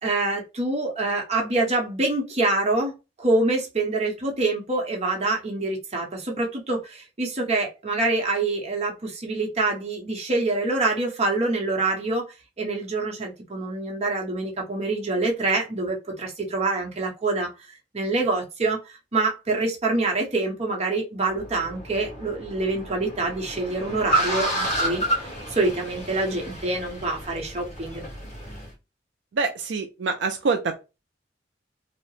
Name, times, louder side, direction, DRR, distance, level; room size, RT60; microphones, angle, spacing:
voice 1, 0.0-12.3 12.6-17.5 17.9-18.8 19.1-25.0 25.5-28.0, right 2 dB, 35° right, 0.8 m, -26 dB
Car, 21.3-28.7, right 1 dB, 35° left, 1.4 m, -30 dB
voice 2, 29.3-30.8, right 4 dB, 70° right, 0.4 m, -26 dB
2.7 x 2.0 x 3.0 m
head